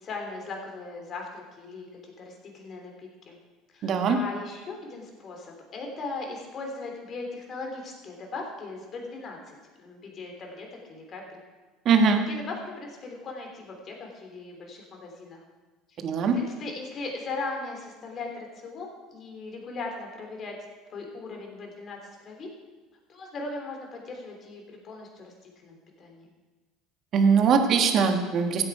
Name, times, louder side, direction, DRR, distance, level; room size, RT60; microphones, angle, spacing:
voice 1, 0.0-3.4 3.7-11.4 12.3-15.4 16.3-20.6 20.9-22.5 23.1-25.3 25.6-26.3, left 3 dB, 40° left, 1 dB, 3.2 m, -38 dB
voice 2, 3.8-4.2 11.8-12.2 16.0-16.4 27.1-28.6, right 5 dB, 50° right, 5 dB, 1.5 m, -21 dB
15.0 x 8.7 x 4.9 m, 1.3 s
hypercardioid pair, 70°, 0 cm